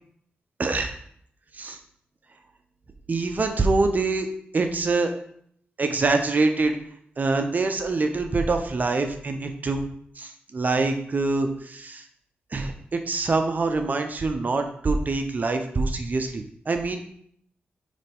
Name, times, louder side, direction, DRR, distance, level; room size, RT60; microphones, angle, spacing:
voice 1, 0.6-0.9 1.6-1.8 3.1-4.3 4.5-5.1 5.8-6.8 7.2-9.8 10.2-12.0 12.5-17.1, right 3 dB, 45° right, 5 dB, 0.7 m, -25 dB
9.0 x 3.4 x 3.5 m, 0.66 s
cardioid pair, 75°, 4 cm